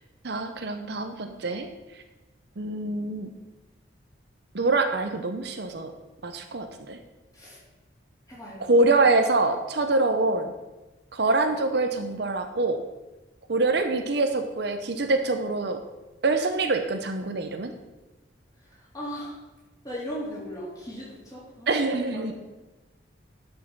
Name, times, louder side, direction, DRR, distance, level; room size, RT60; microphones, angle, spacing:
voice 1, 0.2-1.7 2.6-3.3 4.5-5.9 6.2-7.0 8.6-10.5 11.1-12.8 13.5-15.8 16.2-17.7 21.7-22.3, right 3 dB, 55° right, 7 dB, 0.7 m, -25 dB
voice 2, 8.3-8.7 18.9-19.4 19.8-21.7 22.1-22.3, equal, 20° left, -6 dB, 3.5 m, -37 dB
11.0 x 5.5 x 5.4 m, 1.1 s
head